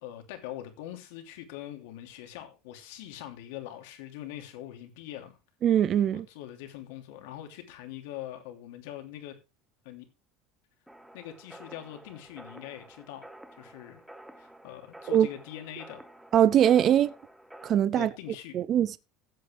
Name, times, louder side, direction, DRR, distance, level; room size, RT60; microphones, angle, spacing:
voice 1, 0.0-5.4 6.3-9.3 9.8-10.1 11.1-13.2 13.6-14.0 14.4-16.0 17.9-18.6, left 12 dB, 75° left, 3.0 m, -42 dB
voice 2, 5.6-6.3 15.1-15.3 16.3-17.1 17.6-18.1 18.5-19.0, right 10 dB, 30° right, 0.5 m, -22 dB
sound 1, 10.9-17.7, right 1 dB, 5° right, 1.0 m, -50 dB
15.5 x 8.4 x 3.4 m
cardioid pair, 170°, 0 cm